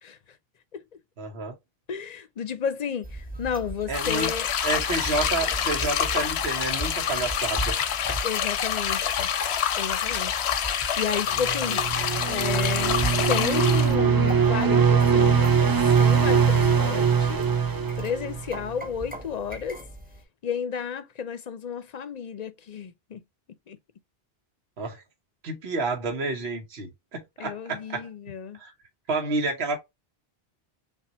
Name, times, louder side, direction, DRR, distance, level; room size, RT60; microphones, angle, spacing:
voice 1, 1.2-1.5 3.9-4.3 4.6-7.7 24.8-25.0 25.4-28.1 28.6-28.7 29.1-29.8, right 3 dB, 75° right, 1.2 m, -29 dB
voice 2, 1.9-4.5 8.2-9.3 9.7-10.4 11.0-11.8 12.3-17.7 18.0-19.8 20.4-23.2 23.7-23.8 27.4-28.6, left 7 dB, 50° left, 0.6 m, -32 dB
sound 1, 3.0-20.2, right 1 dB, 10° right, 0.9 m, -39 dB
sound 2, 3.9-13.9, left 8 dB, 90° left, 0.9 m, -27 dB
sound 3, 11.3-18.7, right 6 dB, 30° right, 0.4 m, -22 dB
5.8 x 2.4 x 2.7 m
omnidirectional pair, 1.1 m